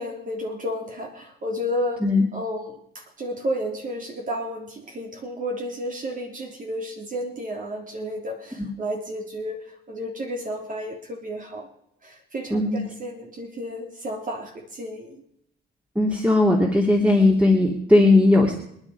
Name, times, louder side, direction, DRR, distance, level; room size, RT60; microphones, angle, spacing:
voice 1, 0.0-2.0 2.3-9.6 9.9-11.7 12.0-15.2, equal, 40° right, 2 dB, 3.3 m, -32 dB
voice 2, 12.5-12.8 15.9-18.5, left 2 dB, 5° right, 0 dB, 2.9 m, -18 dB
27.5 x 10.0 x 4.9 m, 0.73 s
cardioid pair, 90°, 20 cm